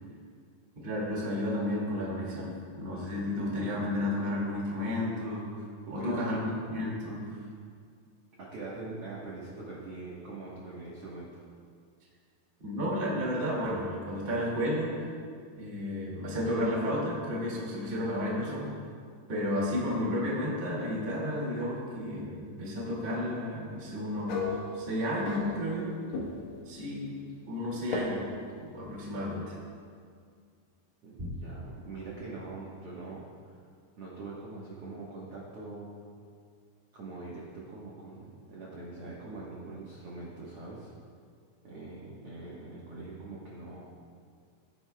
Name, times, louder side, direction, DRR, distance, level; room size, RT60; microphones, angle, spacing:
voice 1, 0.7-5.4 5.9-6.4 6.7-7.2 12.6-14.9 15.5-18.7 19.3-24.5 24.7-26.0 26.6-27.1 27.5-28.2 28.6-29.5, left 1 dB, 25° right, -5 dB, 1.2 m, -32 dB
voice 2, 6.0-6.3 8.4-11.4 31.0-33.6 34.0-36.0 36.9-40.9 41.6-43.8, right 3 dB, 65° right, -6 dB, 1.5 m, -43 dB
sound 1, 24.3-25.9 26.1-26.6 27.9-28.0, left 3 dB, 70° left, 2.7 m, -35 dB
16.0 x 9.7 x 2.3 m, 2.1 s
omnidirectional pair, 4.6 m